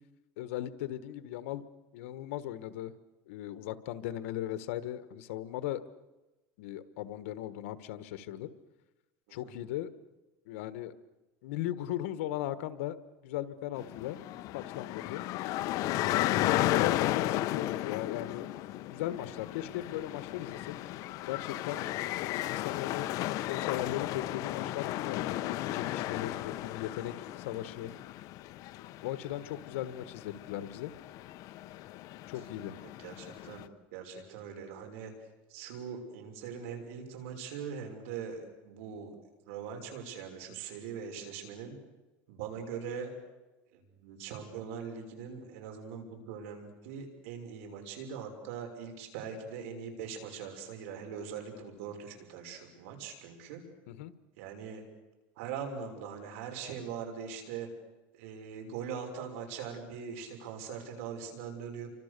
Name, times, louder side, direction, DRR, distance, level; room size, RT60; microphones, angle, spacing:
voice 1, 0.4-1.6 1.9-2.9 3.3-5.8 6.6-8.5 9.3-9.9 10.5-10.9 11.4-13.0 13.2-14.2 14.5-15.2 16.3-18.5 18.9-20.7 21.3-21.8 22.5-23.1 23.5-27.9 29.0-30.9 32.3-32.8 53.9-54.1, left 13 dB, 90° left, 13 dB, 1.5 m, -38 dB
sound 1, 13.8-33.7, left 15 dB, 55° left, 1.0 m, -34 dB
voice 2, 33.0-35.1 35.5-39.1 39.5-41.8 42.3-43.1 43.7-53.6 54.4-54.8 55.4-57.7 58.1-61.9, right 6 dB, 85° right, 4 dB, 6.1 m, -41 dB
29.5 x 25.0 x 6.8 m, 1.1 s
cardioid pair, 140°, 7 cm